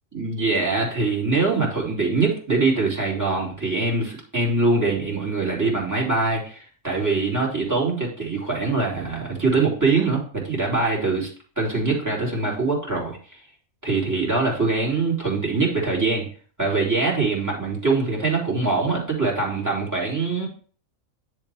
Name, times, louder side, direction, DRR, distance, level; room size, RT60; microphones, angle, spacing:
voice 1, 0.1-11.3 11.6-13.2 13.8-16.3 16.6-20.5, right 3 dB, 10° right, -3 dB, 2.6 m, -23 dB
10.0 x 3.4 x 4.4 m, 0.44 s
omnidirectional pair, 1.5 m